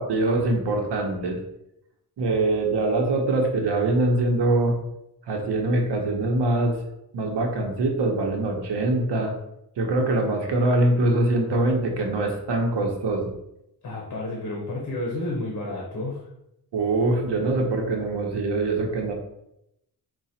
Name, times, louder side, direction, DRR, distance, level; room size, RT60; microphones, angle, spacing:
voice 1, 0.0-1.4 2.2-4.8 5.3-6.8 7.1-9.3 9.8-13.3 16.7-19.1, right 2 dB, 80° right, 2 dB, 0.9 m, -23 dB
voice 2, 13.8-16.2, left 2 dB, 45° left, -2 dB, 0.9 m, -31 dB
4.8 x 2.4 x 4.3 m, 0.82 s
wide cardioid pair, 175°, 41 cm